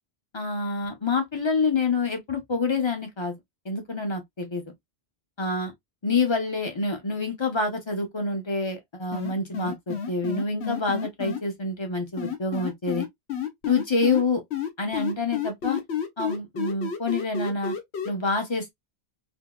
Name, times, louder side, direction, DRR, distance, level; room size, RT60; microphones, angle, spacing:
voice 1, 0.3-3.4 3.6-4.7 5.4-5.7 6.0-13.0 13.7-14.4 14.8-15.8 16.2-17.7 18.0-18.7, left 3 dB, 30° left, 0.9 m, -27 dB
sound 1, 9.1-11.4 12.2-14.2 14.5-18.1, left 7 dB, 80° left, 1.2 m, -30 dB
3.6 x 2.7 x 2.4 m
omnidirectional pair, 1.1 m